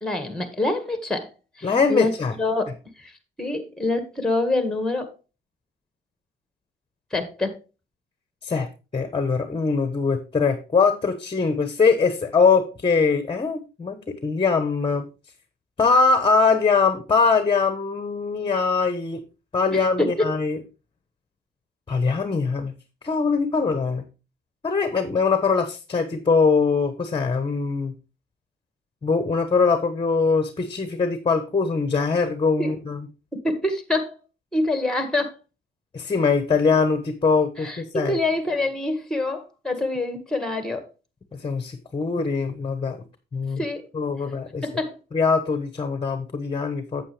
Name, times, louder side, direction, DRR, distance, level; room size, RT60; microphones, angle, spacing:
voice 1, 0.0-1.3 1.6-2.7 3.0-3.1 3.4-5.1 7.1-7.6 19.7-20.3 32.6-32.7 33.4-34.2 34.5-35.3 37.6-40.9 43.6-43.9 44.6-45.0, left 2 dB, 5° left, 1.8 m, -26 dB
voice 2, 1.6-2.3 8.4-8.7 8.9-15.0 15.8-19.2 19.5-20.6 21.9-22.7 23.0-24.0 24.6-27.9 29.0-33.0 35.9-38.2 41.4-43.0 43.3-43.6 43.9-44.6 45.1-47.0, left 4 dB, 25° left, 1.0 m, -22 dB
8.6 x 7.9 x 3.3 m
cardioid pair, 90°, 20 cm